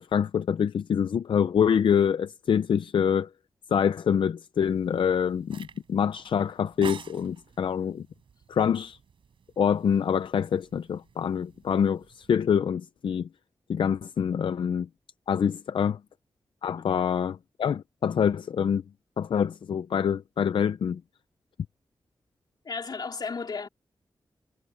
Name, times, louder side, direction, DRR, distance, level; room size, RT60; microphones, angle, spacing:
voice 1, 0.0-3.3 3.7-8.1 8.5-9.0 9.6-13.3 13.7-14.9 15.3-16.0 16.6-18.8 19.2-21.0, left 7 dB, 75° left, 0.5 m, -25 dB
sound 1, 4.6-12.3, right 7 dB, 90° right, 4.6 m, -48 dB
voice 2, 22.6-23.7, left 4 dB, 55° left, 4.0 m, -33 dB
wide cardioid pair, 95°, 9 cm